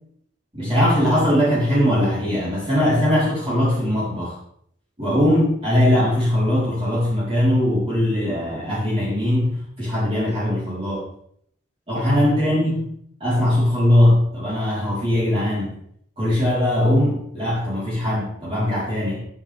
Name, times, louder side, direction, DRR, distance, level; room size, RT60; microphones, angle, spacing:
voice 1, 0.5-4.4 5.0-11.1 11.9-12.9 13.2-15.8 16.2-19.2, left 1 dB, 30° right, -9 dB, 3.9 m, -20 dB
10.5 x 8.8 x 3.4 m, 0.67 s
head